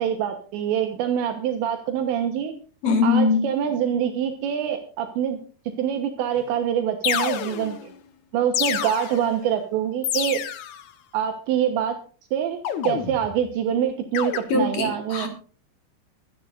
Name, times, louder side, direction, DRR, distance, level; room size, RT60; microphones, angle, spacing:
voice 1, 0.0-2.5 3.0-5.4 5.8-7.9 8.3-10.4 11.1-12.0 12.3-15.3, right 9 dB, 80° right, 5 dB, 3.5 m, -25 dB
voice 2, 2.8-3.4 14.5-15.3, left 4 dB, 50° left, 3 dB, 4.9 m, -21 dB
sound 1, 6.4-6.5 7.0-7.9 8.5-9.4 10.0-10.8 12.6-13.4 14.1-14.4, left 9 dB, 70° left, 1.8 m, -28 dB
24.0 x 9.8 x 2.6 m, 0.39 s
omnidirectional pair, 5.1 m